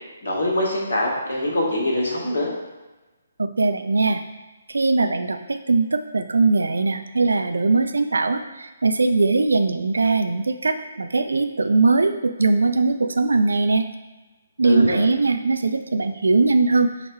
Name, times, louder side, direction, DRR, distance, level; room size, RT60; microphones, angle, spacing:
voice 1, 0.2-2.5 14.6-15.0, left 1 dB, 60° left, -2 dB, 1.2 m, -23 dB
voice 2, 3.4-4.2 4.7-13.9 14.6-16.9, right 3 dB, 65° right, 8 dB, 0.3 m, -20 dB
4.6 x 2.2 x 4.4 m, 1.2 s
figure-of-eight pair, 135°, 0 cm